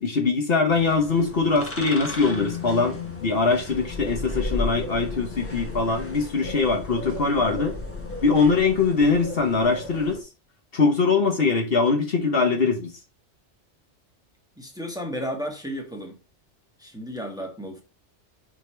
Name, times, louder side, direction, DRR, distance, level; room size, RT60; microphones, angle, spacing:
voice 1, 0.0-7.8 8.2-10.2 10.7-12.9, left 4 dB, 55° left, 1.3 m, -22 dB
sound 1, 0.7-10.2, left 2 dB, 10° left, 1.2 m, -35 dB
sound 2, 2.2-8.8, left 8 dB, 80° left, 1.2 m, -40 dB
voice 2, 14.6-16.2 16.8-17.8, equal, 5° right, 1.4 m, -33 dB
5.3 x 5.0 x 4.4 m
omnidirectional pair, 1.2 m